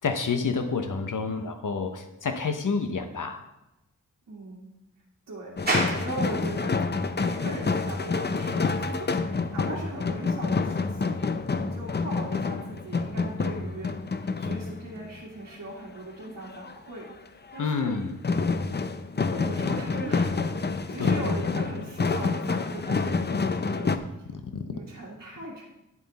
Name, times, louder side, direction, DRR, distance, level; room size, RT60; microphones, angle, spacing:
voice 1, 0.0-3.4 17.6-18.2 21.0-21.3 24.3-24.6, left 5 dB, 70° left, 7 dB, 0.9 m, -29 dB
voice 2, 4.3-4.7 5.3-9.1 9.5-11.3 11.6-13.9 14.4-18.0 19.3-24.0 24.7-25.6, right 2 dB, 60° right, -6 dB, 2.0 m, -39 dB
sound 1, 5.6-15.1 16.4-16.7 17.1-17.2 17.5-17.9 18.2-24.0, left 4 dB, 30° left, 0.6 m, -28 dB
sound 2, 5.7-23.1, right 1 dB, 30° right, 2.2 m, -41 dB
10.0 x 7.9 x 4.1 m, 0.95 s
wide cardioid pair, 120°, 33 cm